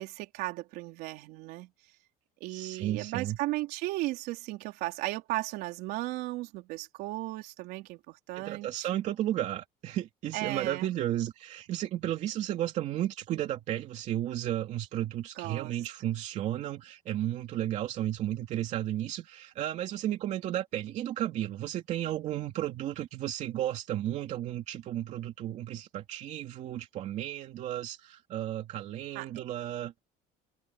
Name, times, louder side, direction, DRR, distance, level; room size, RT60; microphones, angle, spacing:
voice 1, 0.0-1.7 2.4-9.0 10.3-10.9 15.4-15.8 29.1-29.3, right 19 dB, 70° right, 4.0 m, -36 dB
voice 2, 2.5-3.4 8.4-29.9, right 12 dB, 45° right, 2.8 m, -33 dB
cardioid pair, 170°, 16 cm